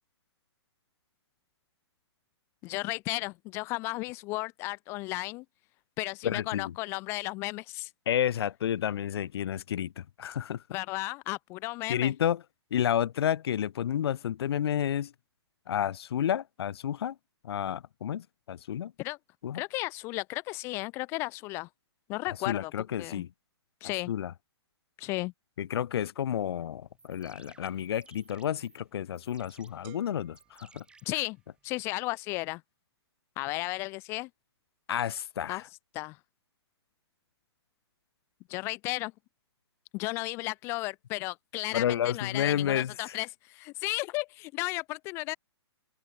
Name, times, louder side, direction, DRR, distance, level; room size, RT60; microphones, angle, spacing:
voice 1, 2.6-5.4 6.0-7.9 10.7-12.1 19.0-19.2 19.5-21.7 22.1-22.7 23.0-23.2 23.8-24.1 25.0-25.3 31.1-31.4 31.6-32.6 33.4-34.3 35.5-35.6 35.9-36.2 38.5-39.1 39.9-45.4, left 22 dB, 15° left, 0.4 m, -34 dB
voice 2, 6.2-6.7 8.1-10.6 11.9-12.4 12.7-15.1 15.7-17.1 17.4-18.9 19.4-19.6 22.5-23.3 24.1-24.3 25.6-30.8 34.9-35.6 41.7-42.9, left 10 dB, 65° left, 0.7 m, -30 dB
sound 1, 26.8-31.8, right 4 dB, 5° right, 3.2 m, -60 dB
sound 2, 29.8-31.7, right 38 dB, 30° right, 3.7 m, -57 dB
open air
hypercardioid pair, 160°, 14 cm